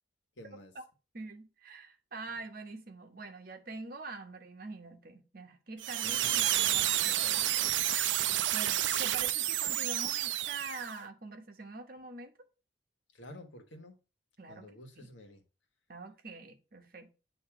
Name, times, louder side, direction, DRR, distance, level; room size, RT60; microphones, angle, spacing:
voice 1, 0.4-0.7 6.0-6.7 13.1-13.9 14.5-15.4, left 1 dB, 85° left, 1.4 m, -51 dB
voice 2, 1.1-7.7 8.5-12.3 14.4-15.1 15.9-17.1, right 3 dB, 50° right, 1.1 m, -45 dB
sound 1, 5.8-11.0, right 12 dB, 80° right, 0.4 m, -30 dB
8.7 x 2.9 x 5.8 m
head